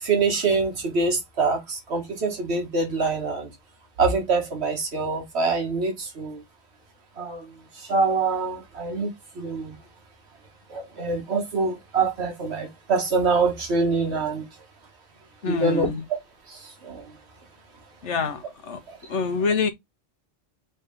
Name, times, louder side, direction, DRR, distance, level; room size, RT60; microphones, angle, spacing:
voice 1, 0.0-3.5 4.0-6.4 7.2-9.1 9.4-9.8 10.7-14.5 15.4-16.2 16.5-17.0 18.9-19.0, right 4 dB, 65° right, 1.8 m, -25 dB
voice 2, 15.4-16.0 18.0-18.8 19.1-19.7, left 5 dB, 80° left, 1.4 m, -26 dB
4.1 x 3.4 x 3.6 m
omnidirectional pair, 1.2 m